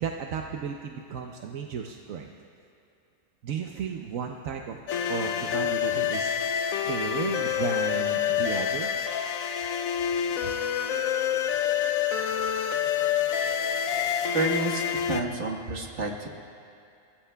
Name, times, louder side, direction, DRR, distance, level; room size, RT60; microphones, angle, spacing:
voice 1, 0.0-2.3 3.4-4.8 5.1-6.3 6.8-8.9 10.4-10.5, right 7 dB, 85° right, 3 dB, 1.1 m, -34 dB
sound 1, 4.9-15.2, left 8 dB, 90° left, 1.1 m, -27 dB
voice 2, 14.3-14.8 15.1-16.3, right 2 dB, 60° right, 0 dB, 1.8 m, -29 dB
29.0 x 17.5 x 2.3 m, 2.6 s
omnidirectional pair, 1.4 m